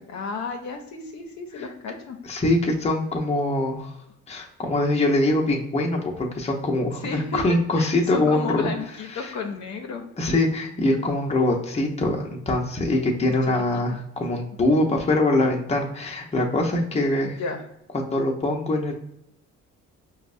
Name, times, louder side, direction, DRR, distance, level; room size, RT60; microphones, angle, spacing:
voice 1, 0.1-2.2 7.0-10.0 13.5-13.8 17.2-17.6, left 4 dB, 65° left, 4 dB, 0.6 m, -32 dB
voice 2, 2.2-4.0 4.3-8.7 9.1-9.3 10.2-17.4 17.9-18.9, left 2 dB, 20° left, 0 dB, 0.7 m, -23 dB
5.1 x 2.1 x 2.5 m, 0.79 s
cardioid pair, 90°, 30 cm